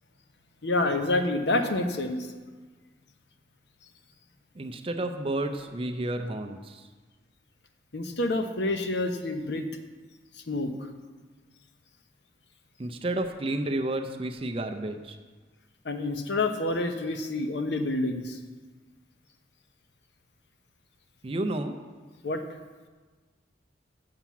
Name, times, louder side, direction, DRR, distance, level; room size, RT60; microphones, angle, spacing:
voice 1, 0.6-2.2 7.9-9.6 10.5-10.7 15.8-18.4 22.2-22.4, left 2 dB, 70° left, 7 dB, 0.8 m, -28 dB
voice 2, 4.5-6.9 12.8-15.2 21.2-21.8, right 1 dB, 30° right, 5 dB, 0.5 m, -31 dB
7.5 x 5.8 x 7.1 m, 1.4 s
head